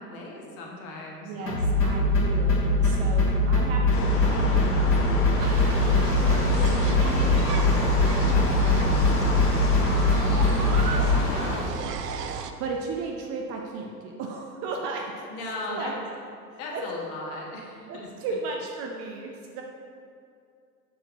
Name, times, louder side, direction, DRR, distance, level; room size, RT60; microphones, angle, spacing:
voice 1, 0.0-1.3 15.3-15.9 16.6-18.1, left 2 dB, 50° left, -2 dB, 1.4 m, -37 dB
voice 2, 1.2-5.4 5.8-7.4 8.2-11.7 12.6-15.9 16.5-16.8 17.9-19.6, right 4 dB, 30° right, 1 dB, 0.5 m, -36 dB
sound 1, 1.5-11.1, left 2 dB, 80° left, 1.5 m, -22 dB
sound 2, 3.9-11.6, left 2 dB, 30° left, 1.0 m, -30 dB
sound 3, 5.4-12.5, right 7 dB, 80° right, 0.5 m, -36 dB
6.6 x 4.4 x 3.8 m, 2.4 s
figure-of-eight pair, 90°, 47 cm